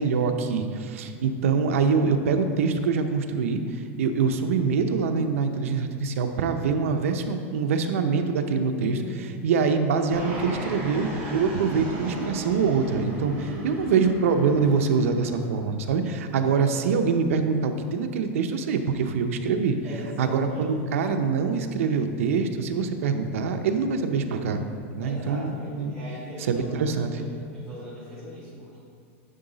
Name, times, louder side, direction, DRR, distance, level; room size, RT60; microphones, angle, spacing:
voice 1, 0.0-9.0 9.4-19.8 20.2-24.6 25.0-25.9 26.5-27.2, right 5 dB, 85° right, 6 dB, 0.6 m, -24 dB
voice 2, 8.7-9.1 13.4-14.0 19.8-20.7 25.0-28.8, left 1 dB, 10° left, -14 dB, 1.7 m, -40 dB
Fixed-wing aircraft airplane, 10.1-15.5, right 1 dB, 25° right, 1.7 m, -36 dB
10.0 x 4.0 x 3.9 m, 2.3 s
supercardioid pair, 175°, 7 cm